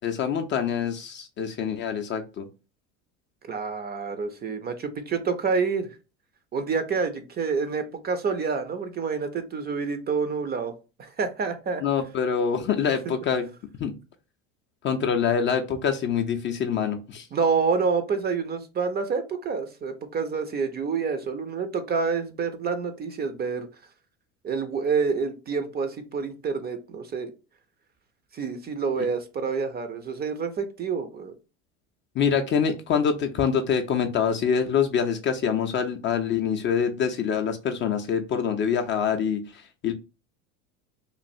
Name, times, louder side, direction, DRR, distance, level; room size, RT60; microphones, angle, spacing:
voice 1, 0.0-2.5 11.8-13.5 13.8-13.9 14.8-17.3 32.2-39.9, left 7 dB, 30° left, 0.4 m, -25 dB
voice 2, 3.5-5.9 6.5-10.7 11.0-11.8 13.1-13.2 17.3-23.7 24.4-27.3 28.3-31.3, right 5 dB, 25° right, 0.4 m, -28 dB
3.1 x 2.3 x 2.6 m
hypercardioid pair, 90°, 38 cm